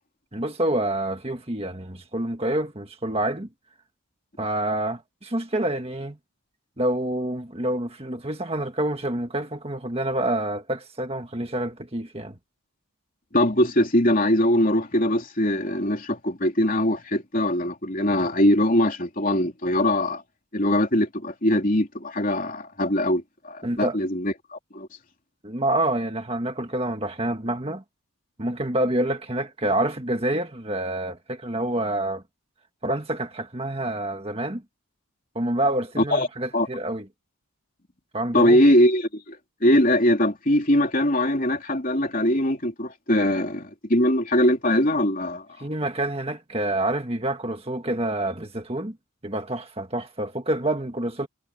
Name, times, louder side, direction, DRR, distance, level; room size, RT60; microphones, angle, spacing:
voice 1, 0.3-3.5 4.4-6.2 6.8-12.4 23.6-24.0 25.4-27.8 28.4-32.2 32.8-34.6 35.3-37.1 38.1-38.6 45.6-49.0 49.2-51.3, right 1 dB, 25° right, 1.6 m, -27 dB
voice 2, 13.3-20.2 20.5-24.9 36.1-36.3 36.5-36.7 38.3-45.4, left 1 dB, 35° left, 3.3 m, -22 dB
head